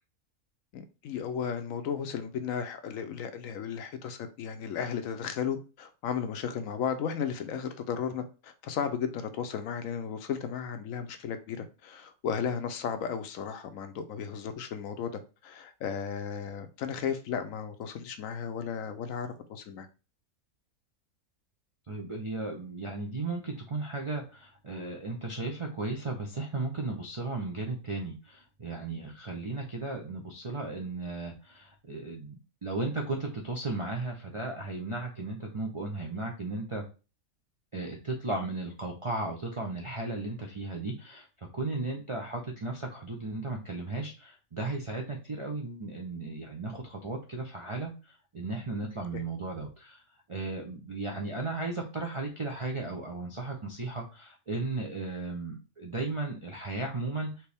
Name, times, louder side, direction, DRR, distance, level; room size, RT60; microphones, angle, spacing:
voice 1, 0.7-19.9 49.1-49.2, left 7 dB, 70° left, 0.9 m, -34 dB
voice 2, 21.9-36.8 37.7-41.3 41.5-50.0 50.3-57.5, right 2 dB, 45° right, 0.4 m, -35 dB
4.5 x 2.9 x 3.4 m
omnidirectional pair, 1.6 m